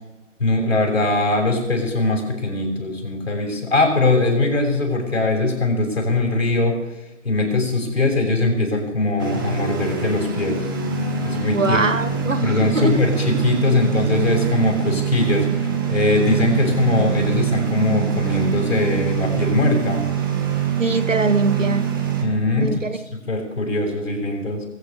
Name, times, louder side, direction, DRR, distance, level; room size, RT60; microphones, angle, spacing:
voice 1, 0.4-6.8 7.2-10.7 11.2-11.8 12.4-20.1 22.2-22.7 23.1-24.7, left 2 dB, 55° left, 2 dB, 7.1 m, -21 dB
sound 1, 9.2-22.2, right 7 dB, 15° right, 1.5 m, -24 dB
voice 2, 11.5-13.0 20.8-21.9 22.6-23.0, right 3 dB, 75° right, 10 dB, 2.0 m, -22 dB
23.5 x 8.9 x 6.7 m, 0.98 s
figure-of-eight pair, 160°, 38 cm